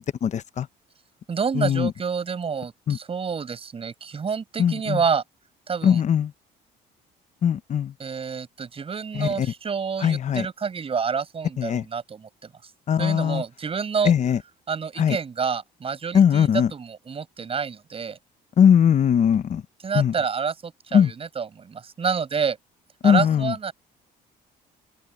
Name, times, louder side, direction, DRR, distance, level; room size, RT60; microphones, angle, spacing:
voice 1, 0.2-0.7 1.5-1.9 2.9-3.0 4.6-5.0 5.8-6.3 7.4-7.9 9.1-9.5 10.0-10.5 11.6-11.8 12.9-13.4 14.0-14.4 15.0-15.2 16.1-16.7 18.6-19.6 19.9-20.1 20.9-21.1 23.0-23.5, left 8 dB, 45° left, 1.0 m, -20 dB
voice 2, 1.3-5.2 5.7-6.0 8.0-12.7 13.0-14.1 14.7-18.2 19.8-22.6 23.0-23.7, right 6 dB, 35° right, 7.1 m, -28 dB
open air
cardioid pair, 110°, 17 cm